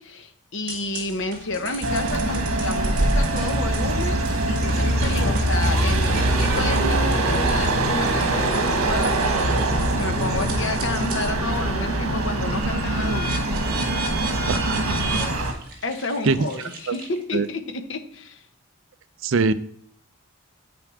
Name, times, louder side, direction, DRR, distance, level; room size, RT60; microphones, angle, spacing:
voice 1, 0.0-13.6 14.3-14.5 15.8-18.5, left 2 dB, 55° left, 7 dB, 1.0 m, -31 dB
sound 1, 0.7-11.4 11.8-17.5, right 3 dB, 40° right, 1.8 m, -36 dB
sound 2, 1.8-15.5, right 1 dB, 80° right, 1.5 m, -23 dB
voice 2, 14.5-15.0 16.2-16.4 16.9-17.0 17.3-17.5 19.2-19.5, right 4 dB, 60° right, 14 dB, 0.5 m, -22 dB
8.7 x 6.9 x 4.9 m, 0.65 s
head